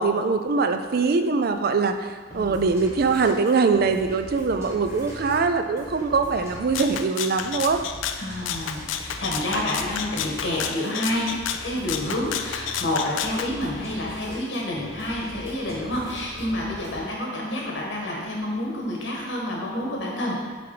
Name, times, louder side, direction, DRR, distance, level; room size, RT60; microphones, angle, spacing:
voice 1, 0.0-7.8, right 4 dB, 50° right, 7 dB, 0.4 m, -22 dB
sound 1, 2.3-17.1, right 1 dB, 15° right, 1.0 m, -42 dB
Rattle (instrument), 6.7-13.5, left 9 dB, 75° left, 0.4 m, -31 dB
voice 2, 8.2-20.4, left 1 dB, 60° left, -2 dB, 1.5 m, -29 dB
7.0 x 3.5 x 4.8 m, 1.5 s
head